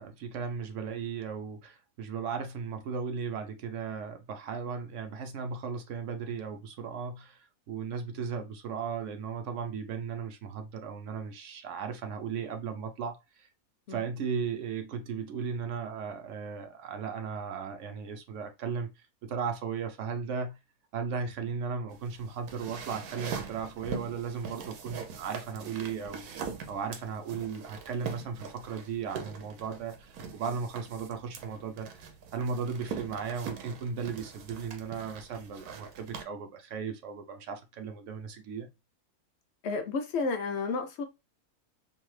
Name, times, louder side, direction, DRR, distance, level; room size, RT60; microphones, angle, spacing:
voice 1, 0.0-13.5 13.9-20.6 20.9-26.2 26.7-38.7, right 6 dB, 65° right, 0.8 m, -36 dB
sound 1, 21.9-36.2, right 6 dB, 85° right, 1.2 m, -42 dB
voice 2, 39.6-41.0, left 4 dB, 70° left, 0.6 m, -31 dB
2.7 x 2.3 x 3.1 m
omnidirectional pair, 1.5 m